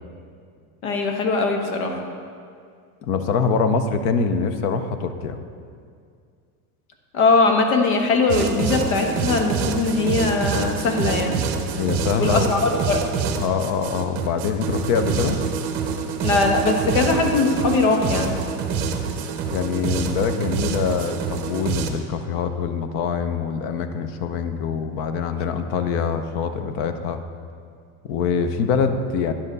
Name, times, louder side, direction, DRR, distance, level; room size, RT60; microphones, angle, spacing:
voice 1, 0.8-2.0 7.1-11.4 12.2-13.0 16.2-18.4, left 3 dB, 85° left, 4 dB, 1.3 m, -20 dB
voice 2, 3.0-5.4 11.8-13.0 13.4-15.4 19.4-27.2 28.0-29.3, left 6 dB, 50° left, 9 dB, 0.6 m, -24 dB
sound 1, 8.3-21.9, right 6 dB, 35° right, 0.7 m, -26 dB
10.0 x 7.4 x 4.0 m, 2.2 s
supercardioid pair, 165°, 42 cm